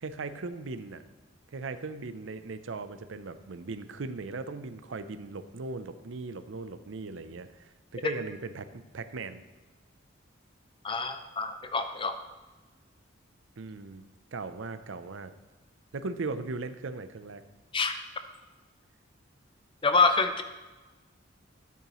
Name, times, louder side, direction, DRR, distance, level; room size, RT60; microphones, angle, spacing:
voice 1, 0.0-1.0 1.5-7.6 7.9-8.7 8.9-9.4 13.6-14.0 14.3-15.3 15.9-17.4, right 3 dB, 70° right, 11 dB, 0.6 m, -38 dB
voice 2, 10.8-12.1 17.7-17.9 19.8-20.4, left 4 dB, 25° left, 8 dB, 0.6 m, -26 dB
13.0 x 8.4 x 3.0 m, 1.2 s
head